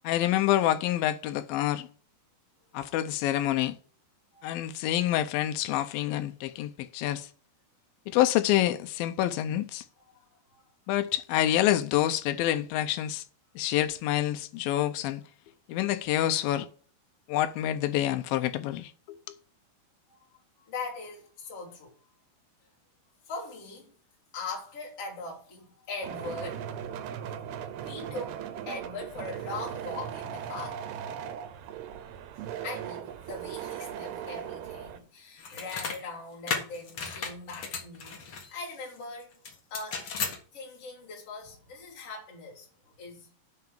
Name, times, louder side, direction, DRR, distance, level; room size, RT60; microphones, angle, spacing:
voice 1, 0.0-1.9 2.7-3.8 4.4-7.3 8.1-9.8 10.9-13.2 13.6-15.2 15.7-16.7 17.3-19.2, left 13 dB, 80° left, 2.2 m, -27 dB
voice 2, 4.3-4.9 10.1-10.2 10.5-10.6 20.1-20.2 20.6-21.9 23.3-23.9 24.3-26.6 27.8-30.8 32.6-39.3 39.7-40.0 40.5-43.3, left 3 dB, 35° left, 4.0 m, -41 dB
sound 1, 26.0-35.0, right 9 dB, 80° right, 2.6 m, -38 dB
sound 2, 35.4-36.0 36.5-38.5 39.4-40.4, left 5 dB, 55° left, 1.6 m, -34 dB
9.6 x 3.9 x 7.3 m
omnidirectional pair, 4.7 m